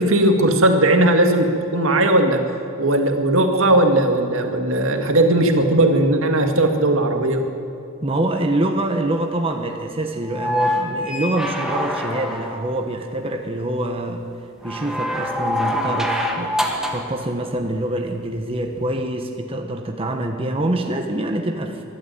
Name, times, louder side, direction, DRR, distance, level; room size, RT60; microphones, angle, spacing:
voice 1, 0.0-2.4 2.8-7.4, right 1 dB, 70° right, 4 dB, 2.1 m, -17 dB
voice 2, 8.0-14.2 14.6-16.5 16.9-21.8, right 1 dB, 25° right, 3 dB, 1.3 m, -25 dB
sound 1, 10.3-12.8 14.6-17.1 18.8-18.9, left 1 dB, 5° right, 1.8 m, -25 dB
23.5 x 12.5 x 9.3 m, 2.6 s
head